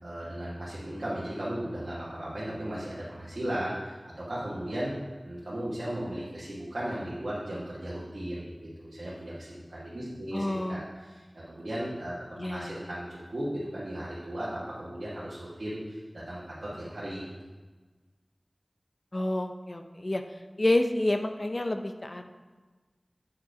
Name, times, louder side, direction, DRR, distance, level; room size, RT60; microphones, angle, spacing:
voice 1, 0.0-4.9 5.2-17.2, right 1 dB, 75° right, -9 dB, 1.7 m, -36 dB
voice 2, 10.3-10.8 12.4-12.8 19.1-20.2 20.6-22.3, left 1 dB, 50° left, 6 dB, 0.6 m, -28 dB
8.4 x 4.8 x 5.1 m, 1.3 s
wide cardioid pair, 50°, 0 cm